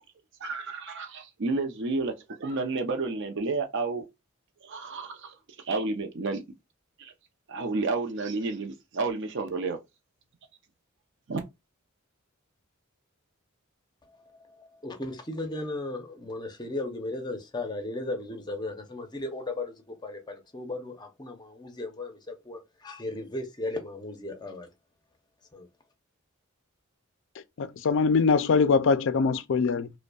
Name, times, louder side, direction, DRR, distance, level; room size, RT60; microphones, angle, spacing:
voice 1, 0.4-2.1 2.4-4.0 4.6-5.3 5.7-6.4 7.0-7.1 7.5-9.8 11.3-11.4, right 3 dB, 60° right, 0.6 m, -30 dB
voice 2, 14.0-24.7 25.5-25.7, left 2 dB, 20° left, 0.6 m, -36 dB
voice 3, 27.6-29.9, left 5 dB, 65° left, 0.4 m, -23 dB
5.1 x 2.2 x 2.3 m
head